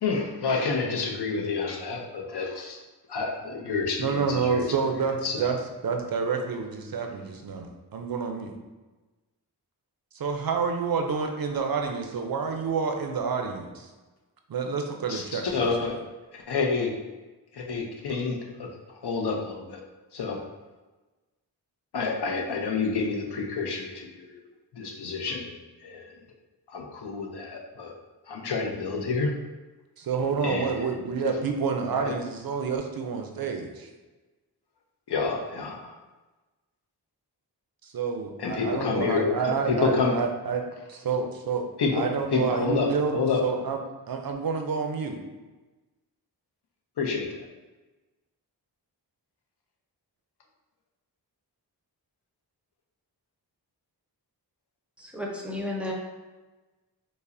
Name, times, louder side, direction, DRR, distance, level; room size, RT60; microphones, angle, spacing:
voice 1, 0.0-2.8 3.1-4.7 5.2-5.5 15.1-16.0 16.3-17.0 17.5-19.8 20.1-20.4 21.9-24.4 24.7-26.1 26.7-27.9 28.3-29.3 30.4-31.3 32.0-32.1 35.1-35.9 38.4-40.2 41.8-42.0 42.3-43.4 47.0-47.5, left 4 dB, 70° left, 1 dB, 0.6 m, -29 dB
voice 2, 4.0-5.6 5.8-8.5 10.1-13.9 14.5-15.7 30.0-33.9 37.8-40.6 40.9-41.7 41.9-43.8 44.1-45.2, right 5 dB, 60° right, 4 dB, 0.5 m, -28 dB
voice 3, 55.0-55.9, left 1 dB, 5° right, -2 dB, 0.5 m, -33 dB
5.3 x 2.0 x 2.5 m, 1.2 s
wide cardioid pair, 110°, 41 cm